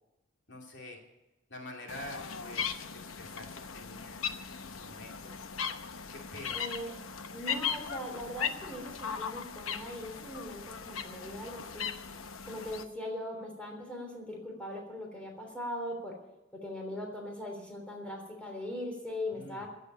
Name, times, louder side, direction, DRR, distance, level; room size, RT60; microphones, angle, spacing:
voice 1, 0.5-1.0 1.5-4.2 4.6-5.3 6.1-6.6 19.3-19.6, left 1 dB, 60° left, 1 dB, 2.7 m, -46 dB
sound 1, 1.9-12.8, left 7 dB, 90° left, 1.0 m, -38 dB
voice 2, 6.5-6.9 7.3-11.9 12.4-16.2 16.5-19.7, left 1 dB, 5° left, 0 dB, 3.4 m, -40 dB
15.5 x 8.1 x 9.1 m, 0.97 s
head